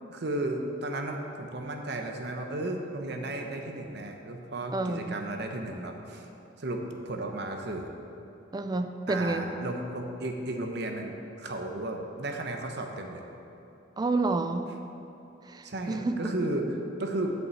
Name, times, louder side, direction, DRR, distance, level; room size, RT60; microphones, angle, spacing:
voice 1, 0.1-6.3 6.6-7.9 9.1-13.2 15.6-16.7 17.0-17.3, right 2 dB, 60° right, 3 dB, 0.9 m, -34 dB
voice 2, 4.7-5.2 8.5-9.5 14.0-14.7 15.4-16.3, right 2 dB, 20° right, 8 dB, 0.4 m, -29 dB
7.9 x 5.4 x 7.1 m, 2.9 s
head